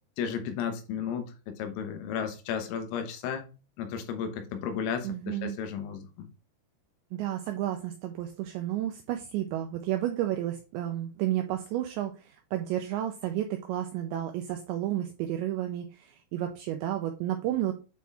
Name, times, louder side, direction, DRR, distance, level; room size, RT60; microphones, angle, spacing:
voice 1, 0.2-3.5 3.8-6.3, left 7 dB, 80° left, 6 dB, 3.8 m, -34 dB
voice 2, 5.0-5.6 7.1-17.7, right 12 dB, 90° right, 5 dB, 2.5 m, -32 dB
8.6 x 4.3 x 3.5 m, 0.32 s
omnidirectional pair, 5.9 m